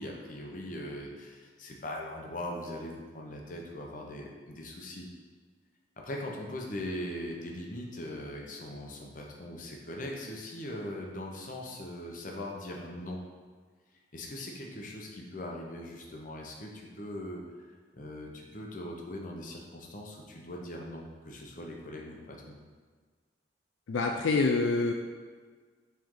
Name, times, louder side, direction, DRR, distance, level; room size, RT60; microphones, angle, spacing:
voice 1, 0.0-5.1 6.0-13.2 14.1-22.6, left 1 dB, 45° left, -1 dB, 0.9 m, -40 dB
voice 2, 23.9-24.9, left 3 dB, 80° left, 3 dB, 0.4 m, -26 dB
7.7 x 3.5 x 3.8 m, 1.5 s
head